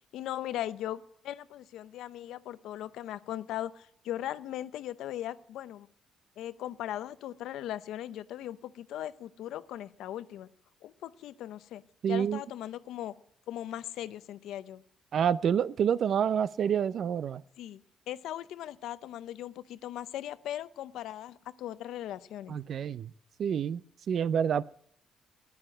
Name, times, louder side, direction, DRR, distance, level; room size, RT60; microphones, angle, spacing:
voice 1, 0.1-5.9 6.4-10.5 10.8-11.8 12.1-13.1 13.5-14.8 17.6-17.8 18.1-22.6, left 12 dB, 85° left, 0.6 m, -38 dB
voice 2, 12.0-12.4 15.1-17.4 22.5-23.1 23.4-24.6, right 8 dB, 60° right, 0.5 m, -28 dB
9.8 x 9.5 x 8.8 m
cardioid pair, 90°, 0 cm